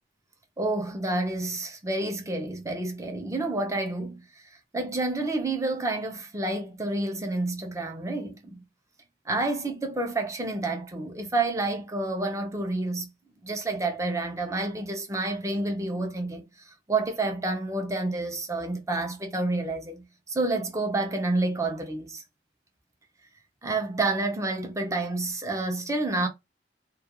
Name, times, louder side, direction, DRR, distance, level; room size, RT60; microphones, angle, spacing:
voice 1, 0.6-8.6 9.3-13.1 13.4-22.2 23.6-26.3, right 2 dB, 15° right, 0.5 m, -29 dB
2.3 x 2.3 x 2.8 m
head